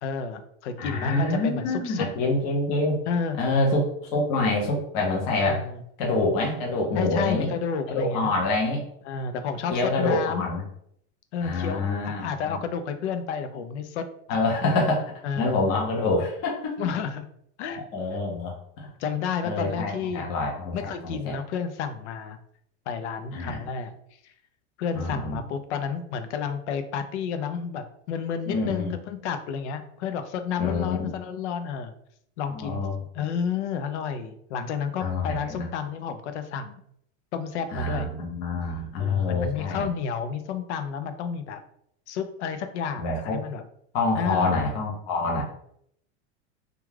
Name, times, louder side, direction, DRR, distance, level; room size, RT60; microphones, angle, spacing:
voice 1, 0.0-2.1 3.1-3.4 5.5-5.8 6.9-8.3 9.1-10.5 11.3-14.0 15.2-15.6 16.8-17.3 17.6-17.8 19.0-20.3 20.7-22.4 22.9-23.9 24.8-31.9 32.4-32.8 33.1-36.7 37.3-38.1 39.0-41.6 42.1-43.6 44.2-44.6, left 6 dB, 90° left, 9 dB, 0.5 m, -31 dB
voice 2, 0.8-3.0 3.4-3.8 4.1-5.6 6.0-7.5 7.9-8.8 9.7-10.6 11.4-12.6 14.3-16.8 17.6-18.9 19.4-21.3 23.3-23.6 24.9-25.4 28.5-29.0 30.6-31.2 32.5-33.0 35.0-35.7 37.7-39.9 43.0-43.4 43.9-45.4, left 2 dB, 25° left, -1 dB, 0.4 m, -26 dB
2.3 x 2.3 x 3.1 m, 0.70 s
supercardioid pair, 175°, 33 cm